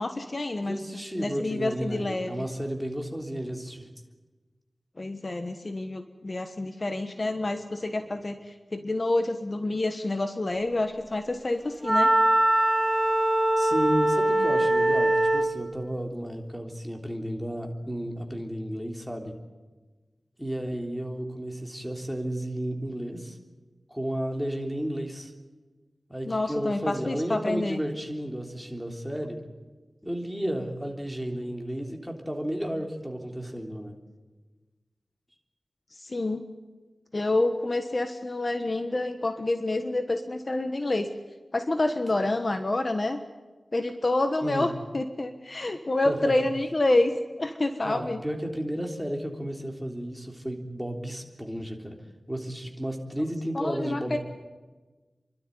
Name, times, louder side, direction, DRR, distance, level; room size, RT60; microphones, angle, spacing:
voice 1, 0.0-0.8 1.1-2.3 5.0-12.1 26.2-27.8 36.0-36.4 37.1-41.1 41.5-43.2 43.7-47.1 47.4-48.2 53.5-54.2, left 2 dB, 45° left, 7 dB, 1.3 m, -28 dB
voice 2, 0.6-3.9 8.1-8.2 13.6-19.3 20.4-23.4 23.9-25.3 26.1-29.4 30.0-34.0 44.4-44.7 46.0-46.3 47.8-52.0 52.3-54.2, equal, 5° right, 2 dB, 3.4 m, -33 dB
Wind instrument woodwind instrument, 11.8-15.6, right 1 dB, 20° right, 2.4 m, -22 dB
29.5 x 12.5 x 9.6 m, 1.3 s
wide cardioid pair, 75°, 0 cm